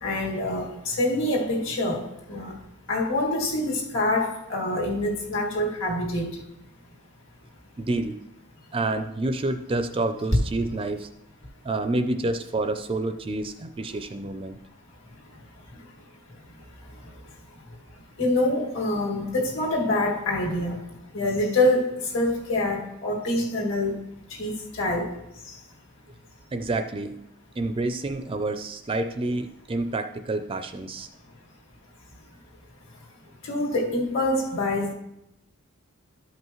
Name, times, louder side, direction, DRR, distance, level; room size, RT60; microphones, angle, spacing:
voice 1, 0.0-2.6 2.9-6.4 15.2-16.0 16.3-20.9 21.1-24.0 24.3-25.6 33.4-34.9, left 1 dB, 60° left, -2 dB, 2.1 m, -26 dB
voice 2, 7.8-8.2 8.7-11.1 11.6-14.6 26.5-27.1 27.6-31.1, right 2 dB, 25° right, 8 dB, 0.4 m, -28 dB
13.0 x 5.5 x 3.1 m, 0.83 s
head